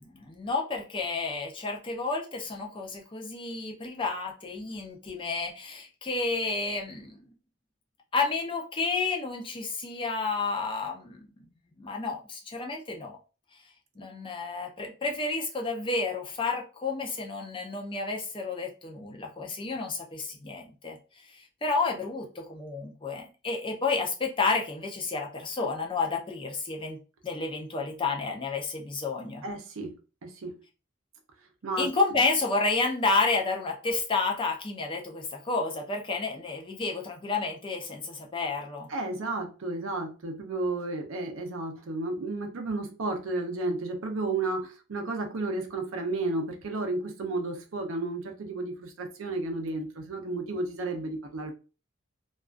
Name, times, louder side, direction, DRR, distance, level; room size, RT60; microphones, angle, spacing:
voice 1, 0.0-7.2 8.1-11.5 11.8-13.2 14.0-21.0 21.3-27.0 27.2-29.4 31.8-38.9, left 3 dB, 25° left, 2 dB, 0.4 m, -30 dB
voice 2, 29.4-30.6 31.6-31.9 38.9-51.5, right 2 dB, 90° right, 4 dB, 0.6 m, -32 dB
2.3 x 2.3 x 2.4 m, 0.33 s
head